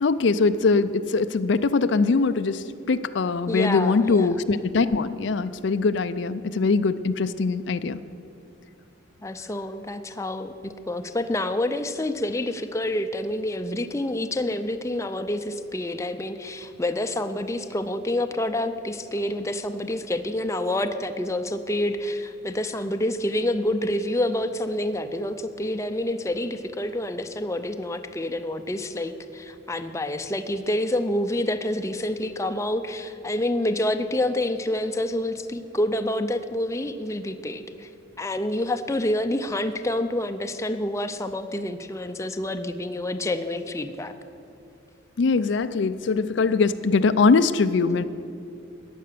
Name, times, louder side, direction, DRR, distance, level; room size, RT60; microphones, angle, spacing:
voice 1, 0.0-8.0 45.2-48.0, left 4 dB, 65° left, 12 dB, 0.4 m, -22 dB
voice 2, 3.5-4.4 9.2-37.9 38.2-44.1, left 1 dB, 15° left, 8 dB, 0.5 m, -28 dB
14.5 x 9.8 x 6.7 m, 2.7 s
head